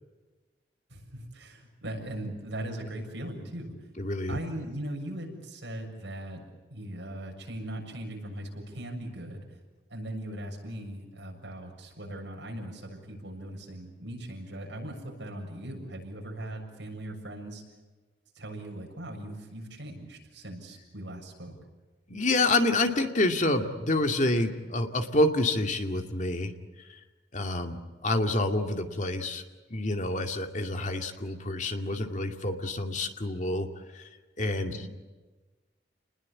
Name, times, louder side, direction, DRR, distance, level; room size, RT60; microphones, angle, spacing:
voice 1, 0.9-3.9 4.3-6.4 6.7-9.5 9.9-17.6 18.4-21.6 34.7-34.9, right 1 dB, 75° right, 1 dB, 7.0 m, -39 dB
voice 2, 4.0-4.4 22.1-26.5 26.8-27.0 27.3-29.4 29.7-33.7 33.9-34.1 34.4-34.9, left 2 dB, 40° left, 5 dB, 2.2 m, -28 dB
29.5 x 20.5 x 8.6 m, 1.3 s
head